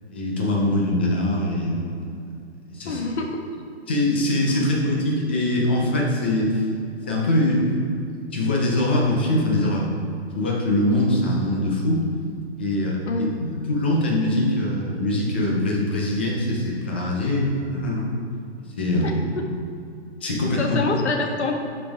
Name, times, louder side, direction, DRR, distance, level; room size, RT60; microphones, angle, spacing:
voice 1, 0.1-2.0 2.7-3.0 3.9-6.6 7.1-7.8 8.3-9.9 10.3-12.0 12.6-13.0 13.7-18.1 18.8-19.2 20.2-20.8, left 1 dB, 10° left, -2 dB, 0.3 m, -22 dB
voice 2, 2.9-3.4 4.5-4.6 13.1-13.4 19.0-19.1 20.6-21.5, left 3 dB, 75° left, 3 dB, 1.4 m, -26 dB
11.5 x 5.2 x 3.4 m, 2.4 s
hypercardioid pair, 155°, 34 cm